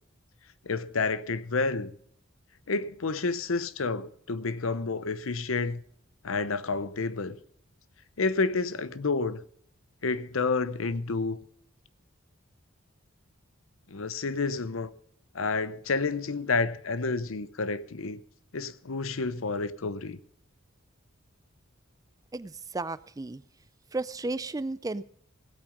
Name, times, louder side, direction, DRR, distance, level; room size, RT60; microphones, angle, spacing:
voice 1, 0.6-1.9 2.7-5.8 6.2-7.4 8.2-9.4 10.0-11.4 13.9-14.9 15.3-18.2 18.5-20.2, left 4 dB, 85° left, 0.8 m, -29 dB
voice 2, 22.3-23.4 23.9-25.0, right 2 dB, 15° right, 0.4 m, -33 dB
17.0 x 8.7 x 5.2 m
head